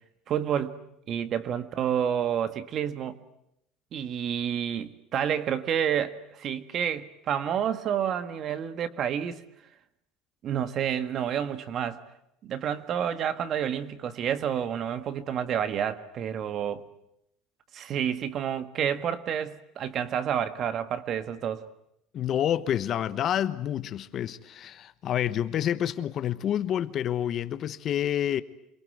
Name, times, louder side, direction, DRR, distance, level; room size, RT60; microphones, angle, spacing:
voice 1, 0.3-0.7 1.1-3.2 3.9-9.4 10.4-12.0 12.4-16.8 17.7-21.7, right 9 dB, 40° right, 1.8 m, -29 dB
voice 2, 22.1-28.4, left 10 dB, 40° left, 1.1 m, -28 dB
27.5 x 22.5 x 9.4 m
cardioid pair, 155°, 0 cm